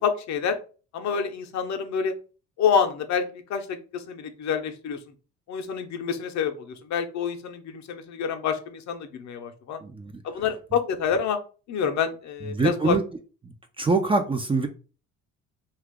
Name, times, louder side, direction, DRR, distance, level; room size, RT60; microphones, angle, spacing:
voice 1, 0.0-0.6 0.9-2.1 2.6-5.0 5.5-9.8 10.2-11.4 11.7-13.0, left 7 dB, 55° left, 6 dB, 0.7 m, -27 dB
voice 2, 9.8-10.2 12.5-13.0 13.4-14.7, right 3 dB, 15° right, 5 dB, 0.4 m, -24 dB
2.8 x 2.4 x 3.5 m, 0.36 s
supercardioid pair, 75°, 33 cm